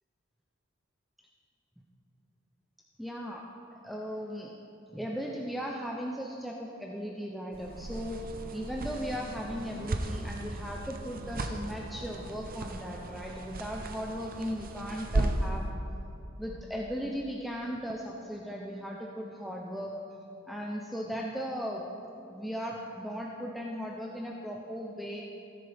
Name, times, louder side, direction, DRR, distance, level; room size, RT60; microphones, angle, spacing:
voice 1, 3.0-3.4 3.8-4.5 4.9-8.2 8.5-15.7 16.4-19.9 20.5-21.8 22.3-25.2, equal, ahead, -2 dB, 0.6 m, -37 dB
sound 1, 7.5-15.6, right 2 dB, 45° right, 0.7 m, -35 dB
16.5 x 10.5 x 3.5 m, 2.8 s
head